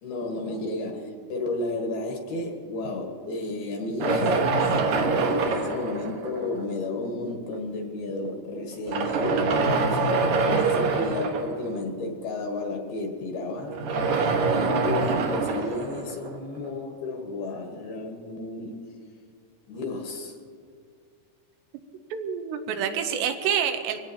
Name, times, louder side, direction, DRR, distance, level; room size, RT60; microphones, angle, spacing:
voice 1, 0.0-13.8 14.0-14.2 14.5-18.8 19.7-20.4, left 2 dB, 65° left, 1 dB, 3.0 m, -32 dB
sound 1, 4.0-6.7 7.5-7.6 8.7-11.8 13.6-16.7, right 4 dB, 60° right, 2.1 m, -25 dB
voice 2, 22.1-24.0, right 8 dB, 85° right, 6 dB, 3.0 m, -27 dB
24.0 x 17.5 x 2.9 m, 2.2 s
omnidirectional pair, 5.2 m